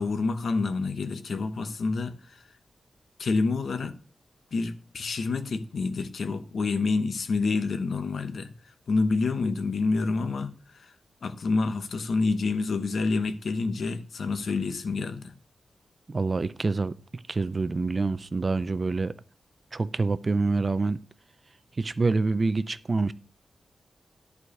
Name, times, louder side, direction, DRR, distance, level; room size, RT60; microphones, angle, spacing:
voice 1, 0.0-2.4 3.2-4.0 4.5-8.5 8.9-10.9 11.2-15.3, left 3 dB, 60° left, 1.0 m, -28 dB
voice 2, 16.1-19.1 19.7-21.0 21.8-23.1, right 3 dB, 30° right, 0.4 m, -26 dB
11.5 x 4.7 x 6.5 m
wide cardioid pair, 165°, 0 cm